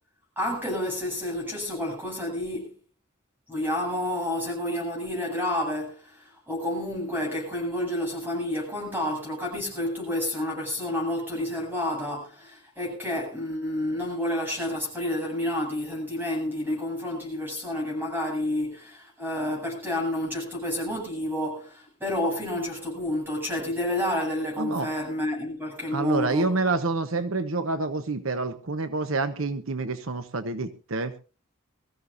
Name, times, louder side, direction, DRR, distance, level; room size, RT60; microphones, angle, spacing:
voice 1, 0.4-2.7 3.5-26.5, left 1 dB, 10° right, 7.7 m, -30 dB
voice 2, 24.6-24.9 25.9-31.1, right 3 dB, 80° right, 1.0 m, -28 dB
22.5 x 14.5 x 2.7 m
head